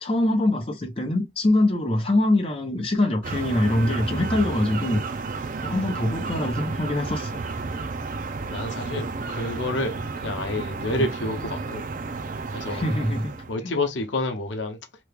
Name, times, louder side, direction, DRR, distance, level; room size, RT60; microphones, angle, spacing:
voice 1, 0.0-5.0 5.6-7.3 10.9-11.0 12.7-13.3 13.6-13.7, left 1 dB, 30° left, 0.7 m, -24 dB
sound 1, 3.2-13.6, right 3 dB, 45° right, 0.4 m, -32 dB
voice 2, 8.5-11.9 12.5-12.9 13.5-14.8, left 2 dB, 80° left, 0.7 m, -29 dB
3.0 x 2.3 x 3.3 m
head